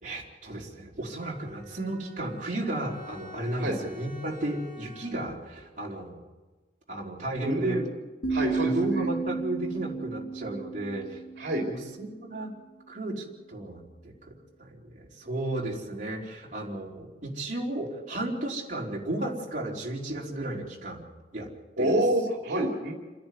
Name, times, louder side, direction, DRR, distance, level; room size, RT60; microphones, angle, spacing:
voice 1, 0.0-6.2 6.9-7.8 8.6-11.2 11.6-12.5 12.9-14.1 14.6-21.0 21.3-21.5 21.8-22.0, right 1 dB, 45° right, -3 dB, 4.5 m, -33 dB
Bowed string instrument, 1.0-5.5, left 2 dB, 30° left, 6.8 m, -49 dB
voice 2, 7.4-7.9 8.3-9.1 11.4-11.7 21.8-22.9, right 1 dB, 70° right, 0 dB, 3.1 m, -27 dB
sound 1, 8.2-12.1, right 4 dB, 70° left, 3.0 m, -32 dB
29.5 x 10.5 x 9.7 m, 1.2 s
head